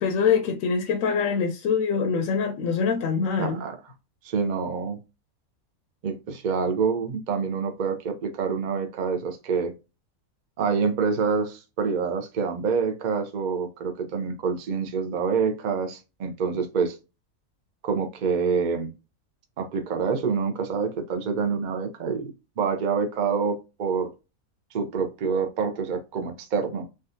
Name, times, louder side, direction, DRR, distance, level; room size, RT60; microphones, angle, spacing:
voice 1, 0.0-3.6, left 6 dB, 70° left, 0.9 m, -24 dB
voice 2, 3.4-3.8 4.2-5.0 6.0-9.7 10.6-17.0 17.8-18.9 19.6-24.1 24.7-26.9, right 5 dB, 50° right, 0.5 m, -27 dB
3.5 x 2.3 x 2.6 m
omnidirectional pair, 1.5 m